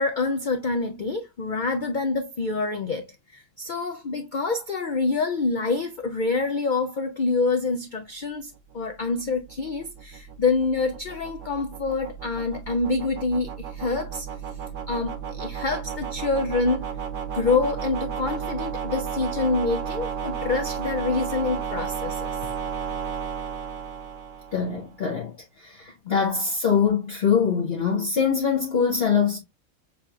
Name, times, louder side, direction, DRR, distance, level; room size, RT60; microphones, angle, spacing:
voice 1, 0.0-14.3 14.9-16.8 17.3-22.4, left 3 dB, 70° left, 0.4 m, -26 dB
sound 1, 8.7-24.9, right 7 dB, 65° right, 1.1 m, -33 dB
voice 2, 24.5-25.3 25.6-29.4, left 6 dB, 50° left, 1.0 m, -23 dB
6.9 x 2.8 x 2.4 m
omnidirectional pair, 1.5 m